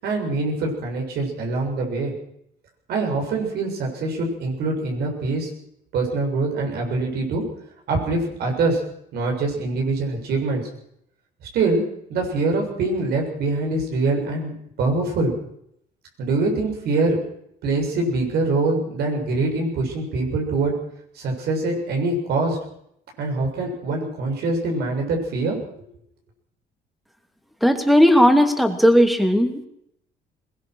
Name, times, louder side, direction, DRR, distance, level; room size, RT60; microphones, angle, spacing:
voice 1, 0.0-2.1 2.9-5.5 5.9-7.4 7.9-8.8 9.1-10.6 11.5-11.8 12.1-15.3 16.2-17.2 17.6-20.7 21.1-22.6 23.2-25.6, right 3 dB, 70° right, 2 dB, 7.2 m, -24 dB
voice 2, 27.6-29.7, equal, ahead, 7 dB, 2.8 m, -16 dB
22.0 x 19.0 x 6.4 m, 0.73 s
cardioid pair, 110°, 17 cm